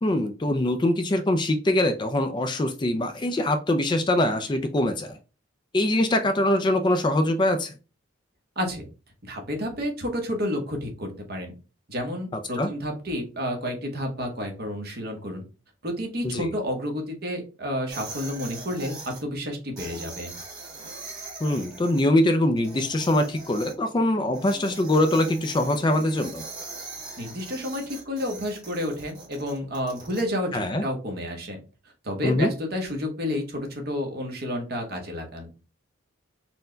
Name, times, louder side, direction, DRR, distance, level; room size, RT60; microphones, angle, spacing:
voice 1, 0.0-5.2 5.7-7.7 12.3-12.7 16.2-16.5 21.4-26.4 30.5-30.8 32.2-32.5, left 1 dB, 20° left, 7 dB, 0.3 m, -23 dB
voice 2, 8.6-8.9 9.2-11.5 11.9-15.4 15.8-20.3 27.2-30.5 30.8-31.6 32.0-35.5, left 1 dB, 50° right, 3 dB, 1.0 m, -30 dB
sound 1, 17.9-19.2 19.8-22.0 22.6-23.7 24.3-30.2, right 3 dB, 20° right, 1.6 m, -41 dB
4.3 x 2.2 x 3.8 m, 0.33 s
head